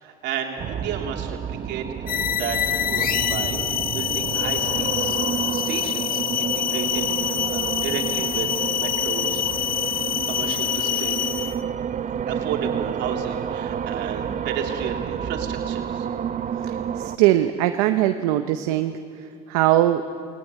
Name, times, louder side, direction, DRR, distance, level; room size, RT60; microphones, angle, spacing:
voice 1, 0.0-2.6 2.9-5.2 5.5-8.5 8.7-9.4 9.7-10.0 10.3-11.2 12.3-16.1, right 8 dB, 70° right, 1 dB, 3.2 m, -33 dB
sound 1, 0.6-17.2, right 8 dB, 45° right, 0.7 m, -30 dB
sound 2, 2.1-11.6, left 10 dB, 50° left, 0.8 m, -26 dB
voice 2, 16.6-19.0 19.5-20.1, right 13 dB, 85° right, 9 dB, 0.7 m, -21 dB
19.0 x 18.5 x 9.2 m, 2.6 s
supercardioid pair, 75°, 19 cm